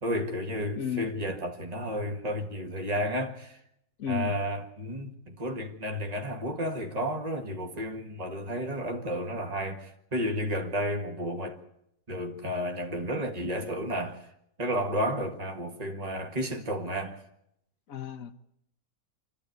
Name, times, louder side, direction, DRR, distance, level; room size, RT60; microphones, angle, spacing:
voice 1, 0.0-3.6 4.1-11.6 12.1-14.3 14.6-17.2, equal, 30° right, 1.9 m, -32 dB
voice 2, 0.8-1.1 4.0-4.4 17.9-18.4, left 8 dB, 75° left, 1.5 m, -33 dB
27.0 x 14.0 x 9.5 m
omnidirectional pair, 1.5 m